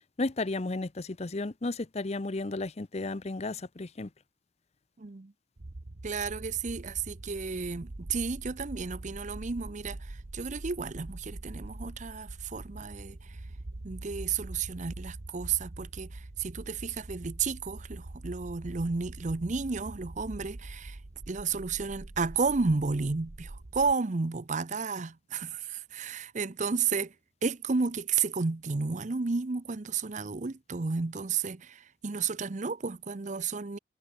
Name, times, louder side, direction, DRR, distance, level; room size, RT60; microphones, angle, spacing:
voice 1, 0.2-4.1, left 2 dB, 35° left, 0.6 m, -33 dB
voice 2, 5.0-5.3 6.0-13.4 13.8-21.0 21.3-27.1 27.4-33.8, right 5 dB, 40° right, 0.6 m, -32 dB
sound 1, 5.6-23.9, right 2 dB, 60° right, 1.1 m, -44 dB
head